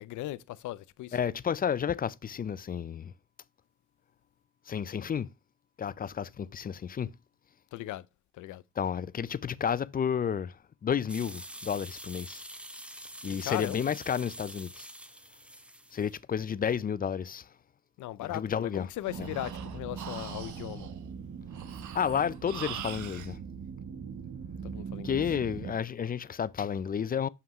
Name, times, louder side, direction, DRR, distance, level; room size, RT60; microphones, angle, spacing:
voice 1, 0.0-1.2 7.7-8.1 8.4-8.6 13.4-13.8 18.0-20.9 24.6-25.2, left 16 dB, 80° left, 0.6 m, -38 dB
voice 2, 1.1-3.1 4.7-5.3 5.8-7.1 8.8-12.4 13.2-14.9 15.9-17.5 18.2-18.9 19.2-19.3 21.9-23.4 25.0-27.3, left 7 dB, 30° left, 0.4 m, -31 dB
sound 1, 11.1-16.2, right 1 dB, 5° right, 0.8 m, -46 dB
Breathing, 18.7-23.3, right 9 dB, 75° right, 1.2 m, -44 dB
sound 2, 19.1-25.7, right 6 dB, 50° right, 1.2 m, -41 dB
6.9 x 5.8 x 3.0 m
cardioid pair, 90°, 30 cm